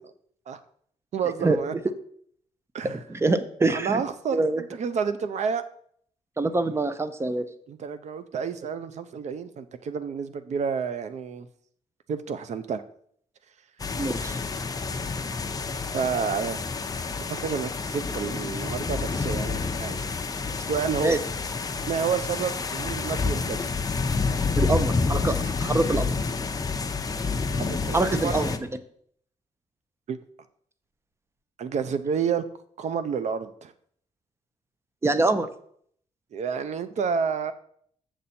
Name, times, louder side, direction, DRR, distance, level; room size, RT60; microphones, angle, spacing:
voice 1, 1.1-1.7 2.7-3.0 3.7-5.6 7.7-11.5 12.1-12.8 15.9-16.6 17.3-20.1 20.5-21.2 21.9-23.7 27.6-28.4 30.1-30.2 31.6-32.4 32.8-33.7 36.3-37.5, right 6 dB, 65° right, 12 dB, 0.7 m, -29 dB
voice 2, 3.1-4.0 4.3-4.6 6.4-7.4 14.0-14.4 21.0-21.2 24.6-26.1 27.9-28.7 35.0-35.5, right 2 dB, 20° right, 12 dB, 0.7 m, -25 dB
sound 1, 13.8-28.6, left 4 dB, 30° left, 0.6 m, -29 dB
7.5 x 6.9 x 4.3 m, 0.63 s
cardioid pair, 110°, 13 cm